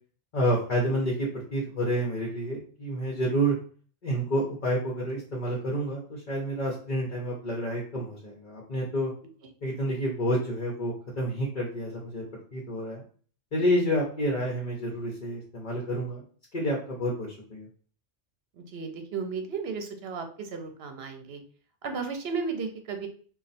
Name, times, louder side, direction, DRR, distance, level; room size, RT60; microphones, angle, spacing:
voice 1, 0.3-3.6 4.0-9.1 9.6-12.2 12.5-13.0 13.5-16.2 16.5-17.7, equal, 45° left, -3 dB, 0.9 m, -29 dB
voice 2, 18.6-21.4 21.8-23.1, right 5 dB, 60° right, 6 dB, 0.9 m, -34 dB
3.1 x 2.4 x 4.1 m, 0.43 s
omnidirectional pair, 1.2 m